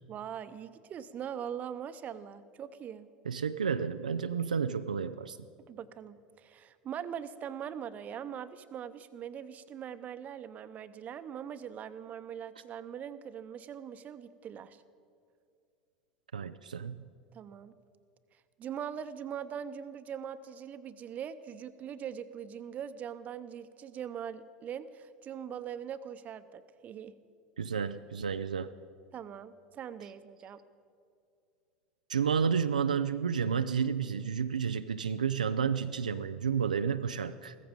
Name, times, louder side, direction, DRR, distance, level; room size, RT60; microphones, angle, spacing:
voice 1, 0.1-3.1 5.7-14.8 17.3-17.7 18.6-27.1 29.1-30.6, right 8 dB, 40° right, 12 dB, 0.8 m, -41 dB
voice 2, 3.3-5.4 16.3-17.0 27.6-28.7 32.1-37.6, right 6 dB, 90° right, 9 dB, 0.4 m, -31 dB
15.5 x 14.5 x 5.3 m, 2.4 s
hypercardioid pair, 80°, 4 cm